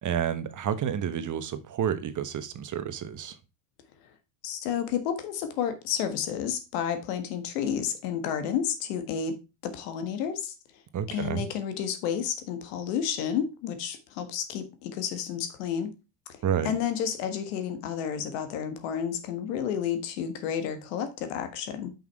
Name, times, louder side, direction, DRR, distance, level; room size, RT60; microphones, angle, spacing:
voice 1, 0.0-3.4 10.9-11.5 16.4-16.7, right 9 dB, 40° right, 1.1 m, -30 dB
voice 2, 4.4-9.4 9.6-10.5 11.1-15.9 16.3-21.9, left 8 dB, 80° left, 1.6 m, -31 dB
5.8 x 5.6 x 4.7 m
supercardioid pair, 85°, 46 cm